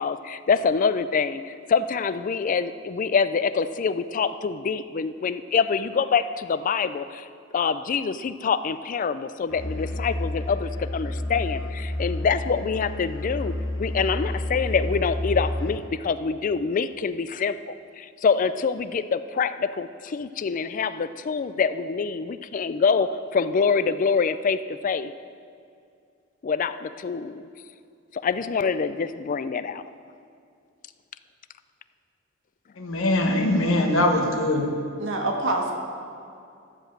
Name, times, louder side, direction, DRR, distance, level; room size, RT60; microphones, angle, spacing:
voice 1, 0.0-7.3 7.5-25.1 26.4-27.4 28.1-29.8, left 5 dB, 40° left, 13 dB, 0.4 m, -25 dB
Musical instrument, 9.5-15.9, left 1 dB, 65° left, 1.2 m, -30 dB
voice 2, 32.8-34.8, left 1 dB, 90° left, 3 dB, 1.3 m, -22 dB
voice 3, 35.0-35.7, right 2 dB, 70° right, 0 dB, 1.7 m, -25 dB
13.0 x 5.1 x 7.4 m, 2.4 s
head